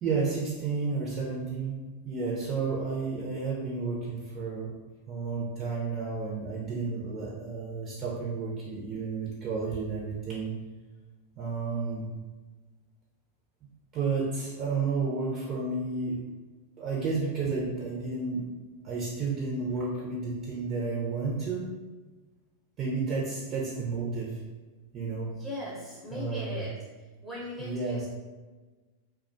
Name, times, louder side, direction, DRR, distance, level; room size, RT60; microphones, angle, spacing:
voice 1, 0.0-1.8 2.0-4.7 5.1-10.5 11.4-12.1 13.9-16.2 16.8-18.4 18.8-21.7 22.8-24.4 24.9-25.3 26.1-26.6 27.6-28.0, right 4 dB, 40° right, -5 dB, 0.6 m, -31 dB
voice 2, 25.3-26.7 27.2-28.1, left 1 dB, ahead, -7 dB, 0.7 m, -38 dB
2.3 x 2.2 x 2.5 m, 1.3 s
hypercardioid pair, 95°, 0 cm